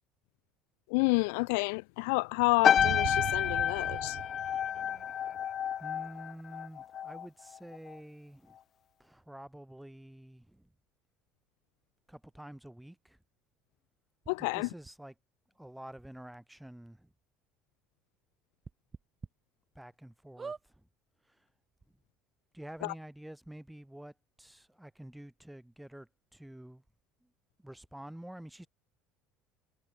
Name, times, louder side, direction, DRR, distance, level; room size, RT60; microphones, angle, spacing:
voice 1, 0.9-4.2 14.3-14.7 22.8-22.9, left 31 dB, 80° left, 0.3 m, -29 dB
sound 1, 2.6-7.3 7.5-7.9, left 9 dB, 40° left, 0.7 m, -29 dB
sound 2, 2.8-5.5, right 15 dB, 55° right, 4.6 m, -40 dB
voice 2, 5.8-8.6 9.0-10.7 12.1-13.2 14.4-15.1 15.6-17.1 19.7-20.5 21.3-21.4 22.5-26.8 27.6-28.7, right 1 dB, 5° right, 6.2 m, -48 dB
sound 3, 14.2-14.3 14.8-14.9 15.9-16.0 16.3-16.4 16.9-17.0 18.6-19.3 19.8-19.9 20.4-20.7 21.5-21.6 21.8-21.9, right 5 dB, 20° right, 3.4 m, -43 dB
cardioid pair, 125°, 0 cm